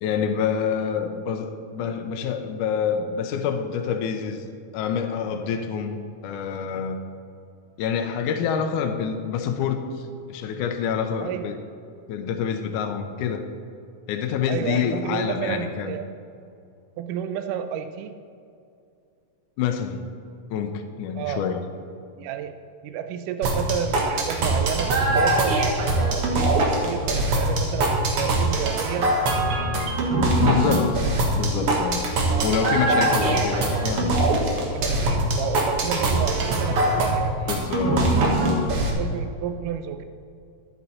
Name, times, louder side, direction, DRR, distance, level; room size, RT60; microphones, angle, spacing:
voice 1, 0.0-4.5 4.7-6.0 6.2-7.0 7.8-10.0 10.3-11.5 12.1-13.5 14.1-16.0 19.6-20.0 20.5-21.6 30.4-32.1 32.4-34.1 37.5-38.1, left 7 dB, 75° left, 5 dB, 2.0 m, -27 dB
voice 2, 11.2-11.6 14.5-16.1 17.0-18.2 21.2-21.4 22.2-29.2 31.6-31.8 32.3-32.5 34.9-38.4 39.0-40.0, right 8 dB, 85° right, 9 dB, 1.9 m, -31 dB
sound 1, 23.4-38.9, right 2 dB, 55° right, 1.7 m, -22 dB
sound 2, 34.5-38.5, left 3 dB, 60° left, 2.0 m, -40 dB
11.5 x 9.9 x 4.3 m, 2.5 s
omnidirectional pair, 4.2 m